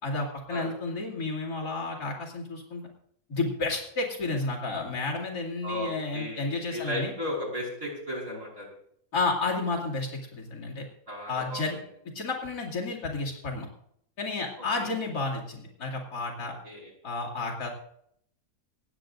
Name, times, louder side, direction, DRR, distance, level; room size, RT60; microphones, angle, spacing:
voice 1, 0.0-2.8 3.3-7.1 9.1-10.8 11.3-11.8 12.1-13.7 14.2-16.6 17.0-17.7, left 3 dB, 70° left, -8 dB, 2.9 m, -31 dB
voice 2, 5.6-8.7 11.1-11.7 14.8-14.9 16.6-16.9, left 1 dB, 55° right, -3 dB, 5.6 m, -35 dB
26.0 x 9.2 x 2.6 m, 0.69 s
omnidirectional pair, 1.7 m